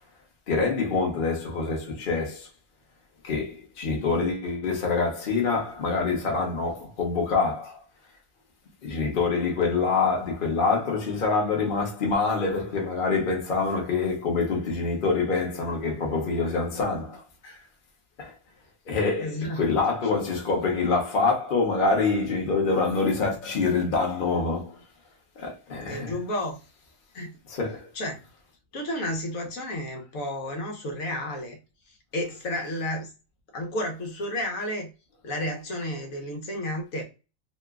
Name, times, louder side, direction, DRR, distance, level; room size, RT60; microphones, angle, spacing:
voice 1, 0.5-2.5 3.2-7.8 8.8-17.6 18.2-18.4 18.9-24.8 25.4-26.2 27.5-27.9, left 4 dB, 40° left, 1.0 m, -26 dB
voice 2, 19.2-19.6 20.1-20.2 25.8-26.6 27.1-27.3 27.9-28.2 28.7-31.6 32.1-33.1 33.5-34.9 35.2-37.0, left 1 dB, 80° left, 1.3 m, -31 dB
3.0 x 2.2 x 3.5 m
omnidirectional pair, 1.4 m